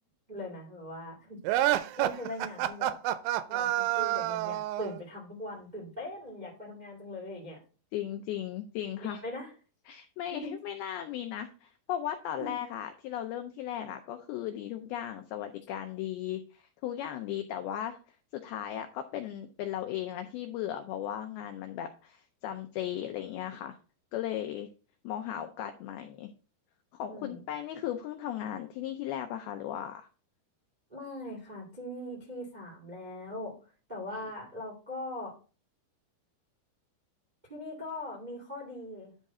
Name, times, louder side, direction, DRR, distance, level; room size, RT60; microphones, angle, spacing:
voice 1, 0.3-1.5 2.0-3.0 3.5-7.6 9.0-9.5 10.4-10.5 12.4-12.5 27.1-27.4 30.9-33.5 33.9-35.3 37.5-39.1, left 1 dB, 20° right, -3 dB, 1.0 m, -40 dB
sound 1, 1.4-5.0, right 14 dB, 90° right, 2.9 m, -28 dB
voice 2, 7.9-9.2 9.9-18.0 18.3-23.8 24.1-24.7 25.0-26.3 26.9-30.1, left 11 dB, 90° left, 7 dB, 2.2 m, -36 dB
11.0 x 3.6 x 4.2 m, 0.37 s
omnidirectional pair, 5.1 m